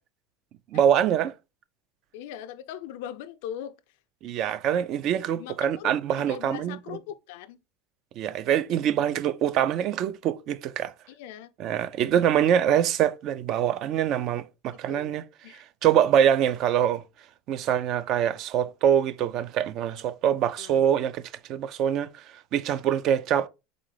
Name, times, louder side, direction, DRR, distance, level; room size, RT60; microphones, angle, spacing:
voice 1, 0.7-1.3 4.2-7.0 8.2-10.9 11.6-15.2 15.5-17.0 17.5-22.2 22.5-23.5, right 9 dB, 50° right, 0.4 m, -24 dB
voice 2, 2.1-3.7 5.3-7.6 11.1-11.5 14.9-15.1 15.4-15.6 20.6-20.8, left 10 dB, 75° left, 0.4 m, -40 dB
3.8 x 3.8 x 3.2 m
supercardioid pair, 130°, 0 cm